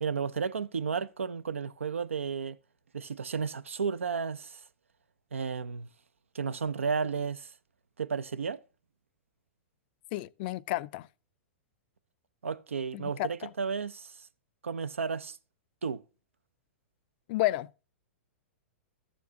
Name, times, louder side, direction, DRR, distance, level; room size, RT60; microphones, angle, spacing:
voice 1, 0.0-2.6 2.9-4.6 5.3-5.9 6.3-7.5 8.0-8.6 12.4-14.3 14.6-15.4 15.8-16.0, right 5 dB, 90° right, 0.5 m, -33 dB
voice 2, 10.1-11.1 12.9-13.5 17.3-17.9, left 17 dB, 50° left, 0.4 m, -32 dB
13.5 x 7.1 x 2.8 m
hypercardioid pair, 115°, 7 cm